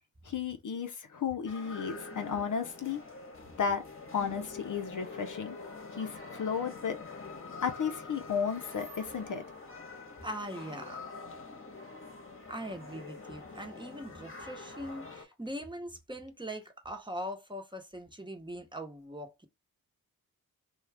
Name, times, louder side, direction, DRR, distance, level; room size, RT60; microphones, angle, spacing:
voice 1, 0.2-3.0 3.6-3.8 4.1-5.6 5.9-7.0 7.6-9.4, left 6 dB, 55° left, 0.7 m, -33 dB
sound 1, 1.4-15.2, left 3 dB, 35° left, 1.1 m, -45 dB
voice 2, 10.2-11.0 12.5-19.5, equal, 10° right, 1.0 m, -41 dB
2.4 x 2.4 x 3.3 m
cardioid pair, 45°, 37 cm